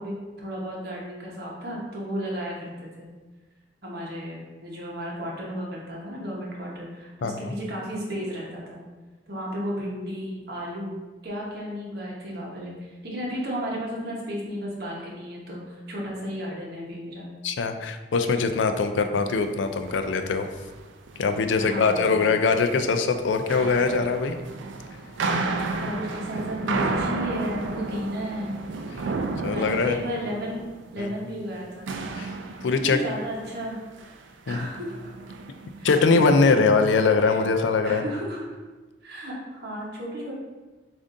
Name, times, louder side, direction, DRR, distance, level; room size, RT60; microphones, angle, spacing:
voice 1, 0.0-3.1 3.8-8.8 9.3-10.9 11.2-17.3 21.6-22.2 25.8-28.6 29.5-30.6 30.9-31.9 32.8-33.8 34.5-34.9 35.8-36.7 37.2-37.5 37.8-38.4 39.0-40.4, equal, 55° right, -4 dB, 1.1 m, -33 dB
voice 2, 7.2-7.5 17.4-20.5 21.2-24.4 29.4-29.9 31.0-31.1 32.2-32.3 32.6-33.0 34.5-34.7 35.8-38.0, left 4 dB, 85° left, 7 dB, 0.4 m, -22 dB
sound 1, 19.2-19.4 19.7-20.1 20.4-22.1 22.4-22.8 23.3-31.6 31.9-33.7 34.0-34.3 34.6-36.0, right 3 dB, 85° right, 0.4 m, -32 dB
6.9 x 2.6 x 2.6 m, 1.2 s
head